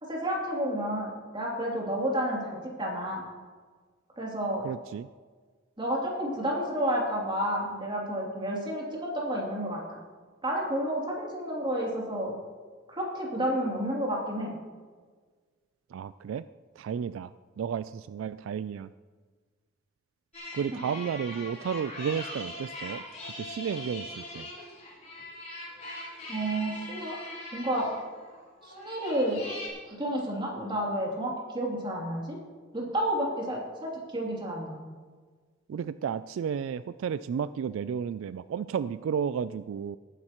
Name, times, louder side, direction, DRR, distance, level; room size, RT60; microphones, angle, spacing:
voice 1, 0.0-3.2 4.2-4.7 5.8-10.0 10.4-12.3 12.9-14.5 20.7-20.8 26.3-27.2 27.5-27.9 28.6-29.4 29.8-32.4 32.7-34.8, right 1 dB, 25° right, -3 dB, 2.9 m, -30 dB
voice 2, 4.6-5.1 15.9-16.4 16.8-17.3 17.6-18.9 20.5-23.0 23.4-24.5 35.7-40.0, right 7 dB, 80° right, 15 dB, 0.3 m, -32 dB
sound 1, 20.3-29.7, left 1 dB, 40° left, 3.7 m, -41 dB
18.0 x 9.9 x 3.0 m, 1.5 s
head